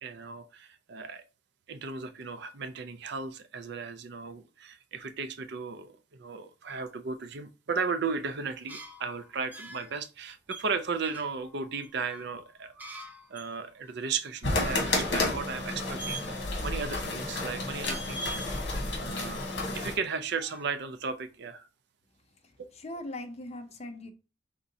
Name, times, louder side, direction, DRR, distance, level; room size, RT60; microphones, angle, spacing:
voice 1, 0.0-1.2 1.7-13.0 13.3-18.3 19.0-19.4 19.7-21.7 22.6-22.7, right 5 dB, 60° right, 0.5 m, -35 dB
squeaky gate, 8.5-10.0 10.5-13.6 13.8-13.9 14.3-15.1 16.0-16.7 17.0-17.5 17.8-18.6 19.0-20.1 20.3-21.1, right 2 dB, 10° right, 0.7 m, -44 dB
sound 1, 14.4-19.9, left 2 dB, 60° left, 1.3 m, -31 dB
voice 2, 22.7-24.1, left 1 dB, 35° left, 0.6 m, -40 dB
5.0 x 3.6 x 2.7 m
head